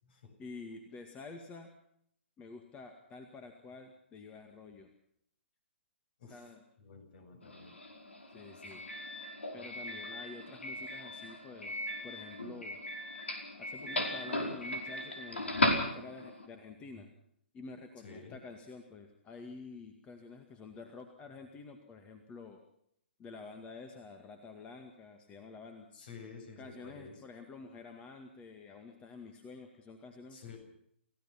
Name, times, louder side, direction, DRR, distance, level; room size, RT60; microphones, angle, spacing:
voice 1, 0.4-1.7 2.4-4.9 6.3-6.6 8.3-8.8 9.5-11.7 12.0-12.8 13.6-17.1 17.5-22.6 23.2-25.9 26.6-30.4, left 4 dB, 20° left, 6 dB, 2.1 m, -49 dB
voice 2, 6.8-7.8 18.0-18.4 25.9-27.1 30.3-30.6, left 5 dB, 50° left, 5 dB, 7.6 m, -50 dB
Doorbell, 7.4-16.5, left 1 dB, 80° left, 5.1 m, -37 dB
29.0 x 16.0 x 5.9 m, 0.70 s
figure-of-eight pair, 125°, 6 cm